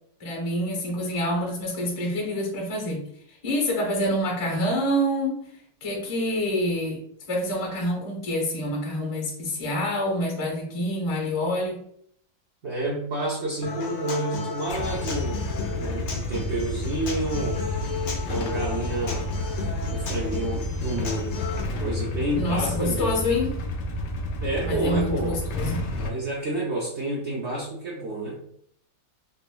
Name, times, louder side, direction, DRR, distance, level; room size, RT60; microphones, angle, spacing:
voice 1, 0.2-3.1 3.4-5.5 5.8-7.0 7.3-11.8 22.3-23.6 24.6-25.8, left 1 dB, 25° left, -1 dB, 0.7 m, -27 dB
voice 2, 12.6-15.4 15.7-17.6 18.3-19.3 19.9-21.3 21.8-23.1 24.4-25.4 25.9-28.4, right 2 dB, 55° right, -5 dB, 0.8 m, -29 dB
Human voice / Acoustic guitar, 13.6-21.6, left 4 dB, 90° left, 1.5 m, -35 dB
Motorcycle / Engine starting / Idling, 14.7-26.1, left 2 dB, 75° left, 1.1 m, -30 dB
4.0 x 2.7 x 2.2 m, 0.66 s
omnidirectional pair, 2.0 m